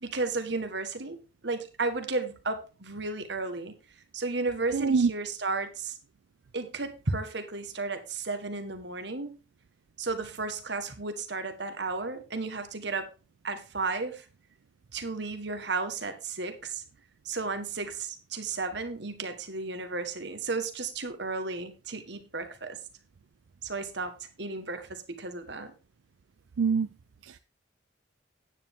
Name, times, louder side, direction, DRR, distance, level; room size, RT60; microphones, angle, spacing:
voice 1, 0.0-1.2 1.4-3.7 4.1-5.9 6.5-9.3 10.0-13.1 13.4-14.2 14.9-16.8 17.2-22.8 23.6-25.7, right 3 dB, 60° right, 1.5 m, -33 dB
voice 2, 4.7-5.1 26.6-26.9 27.2-27.4, right 5 dB, 90° right, 0.5 m, -24 dB
9.8 x 9.2 x 3.6 m
head